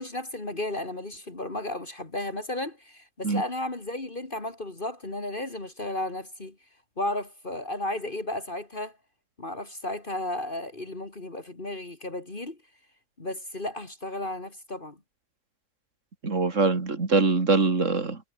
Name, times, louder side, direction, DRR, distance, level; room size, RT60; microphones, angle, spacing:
voice 1, 0.0-6.6 7.0-9.0 9.4-12.6 13.2-15.0, left 1 dB, 40° left, 2.9 m, -34 dB
voice 2, 16.2-18.2, right 4 dB, 70° right, 3.1 m, -23 dB
omnidirectional pair, 1.4 m